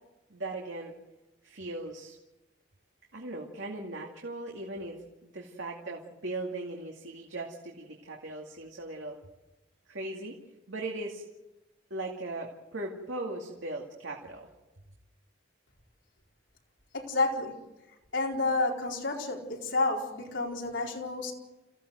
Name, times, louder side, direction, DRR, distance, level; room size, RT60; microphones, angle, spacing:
voice 1, 0.3-0.9 1.4-2.2 3.1-5.0 5.2-9.2 9.9-10.4 10.7-11.2 11.9-14.5, right 2 dB, 80° right, 0 dB, 2.4 m, -38 dB
voice 2, 16.9-17.6 18.1-21.3, left 3 dB, 75° left, -1 dB, 4.5 m, -30 dB
29.0 x 15.5 x 7.9 m, 1.1 s
head